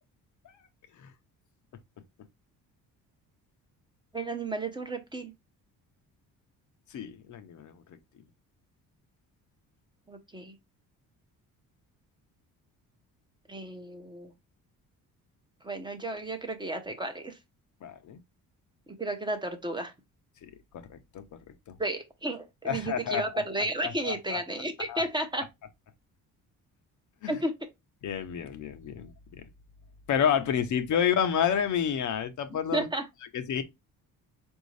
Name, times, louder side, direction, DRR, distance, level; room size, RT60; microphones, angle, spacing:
voice 1, 4.1-5.3 10.1-10.5 13.5-14.3 15.6-17.4 19.0-19.9 21.8-25.4 27.3-27.5 32.7-33.0, right 1 dB, 15° right, 0.7 m, -33 dB
voice 2, 6.9-7.7 17.8-18.2 20.4-20.5 20.9-21.2 21.7-21.8 22.6-23.4 23.8-24.4 24.9-25.0 27.2-27.4 28.0-29.1 29.4-29.5 30.1-32.9 33.3-33.6, left 8 dB, 55° left, 0.7 m, -29 dB
4.5 x 2.7 x 3.1 m
cardioid pair, 110°, 35 cm